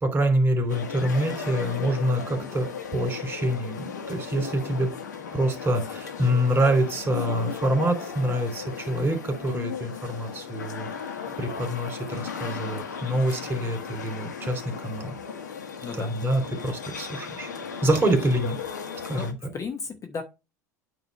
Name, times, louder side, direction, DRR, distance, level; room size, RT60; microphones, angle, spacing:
voice 1, 0.0-4.9 5.3-10.9 11.4-15.1 16.0-17.5 17.8-18.6 19.0-19.3, right 1 dB, 20° right, 6 dB, 3.2 m, -26 dB
sound 1, 0.7-19.3, left 6 dB, 85° left, 1.2 m, -36 dB
voice 2, 2.2-2.5 12.4-13.1 15.8-16.1 19.1-20.2, left 5 dB, 35° left, 5 dB, 1.1 m, -37 dB
9.0 x 3.0 x 5.4 m, 0.27 s
hypercardioid pair, 80°, 9 cm